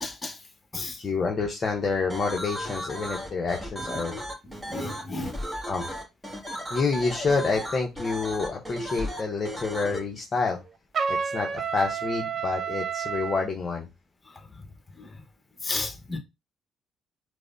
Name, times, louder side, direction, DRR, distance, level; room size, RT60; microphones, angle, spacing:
voice 1, 0.0-0.3 0.7-1.0 4.7-5.3 15.6-16.2, left 2 dB, 25° left, 1.0 m, -32 dB
voice 2, 1.0-4.1 5.7-5.9 6.7-10.6 11.1-13.9, left 4 dB, 45° left, 0.6 m, -28 dB
sound 1, 2.1-10.0, equal, 10° right, 1.4 m, -35 dB
Trumpet, 10.9-13.5, right 6 dB, 50° right, 0.4 m, -30 dB
4.8 x 2.0 x 2.5 m
supercardioid pair, 65°, 0 cm